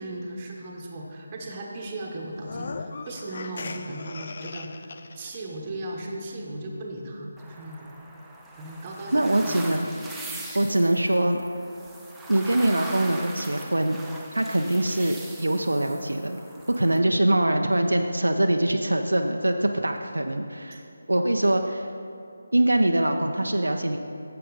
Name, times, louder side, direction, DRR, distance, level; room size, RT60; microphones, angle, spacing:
voice 1, 0.0-7.9 8.6-9.7, right 1 dB, 25° right, -1 dB, 1.3 m, -37 dB
sound 1, 2.4-5.4, left 4 dB, 45° left, 0.4 m, -38 dB
sound 2, 7.4-17.0, right 2 dB, 5° right, 0.6 m, -41 dB
voice 2, 9.1-9.9 10.5-11.4 12.3-14.0 14.3-16.4 16.8-20.8 21.1-21.9 22.5-24.0, right 1 dB, 80° right, 5 dB, 0.5 m, -23 dB
11.0 x 7.6 x 4.0 m, 2.6 s
figure-of-eight pair, 155°, 0 cm